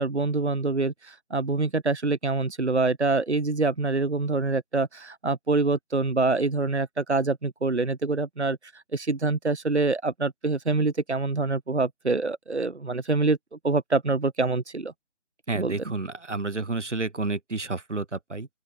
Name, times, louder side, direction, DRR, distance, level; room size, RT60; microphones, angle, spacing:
voice 1, 0.0-13.4 13.6-14.9 15.6-15.7, right 3 dB, 70° right, 4.0 m, -25 dB
voice 2, 15.5-18.5, right 3 dB, 90° right, 5.5 m, -30 dB
open air
figure-of-eight pair, 180°, 35 cm